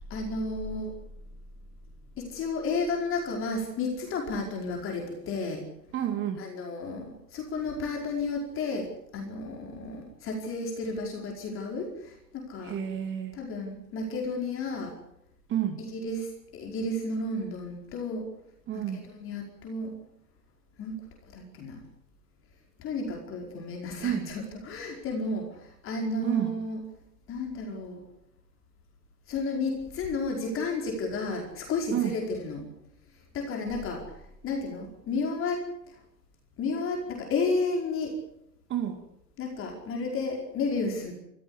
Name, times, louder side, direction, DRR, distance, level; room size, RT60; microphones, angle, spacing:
voice 1, 0.1-0.9 2.2-5.6 6.4-12.7 13.4-14.9 15.8-18.3 18.7-18.8 19.1-19.9 20.8-20.9 21.3-21.8 22.8-26.8 27.3-28.0 29.3-32.6 33.3-34.0 34.4-35.6 36.6-38.1 39.4-41.1, left 3 dB, 25° left, 1 dB, 5.0 m, -32 dB
voice 2, 5.9-6.4 12.6-13.4 15.5-15.8 18.7-19.0 24.0-24.3 26.2-26.6 31.9-32.2 38.7-39.0, right 10 dB, 25° right, 7 dB, 2.3 m, -30 dB
26.5 x 15.0 x 8.6 m, 0.80 s
figure-of-eight pair, 105°, 49 cm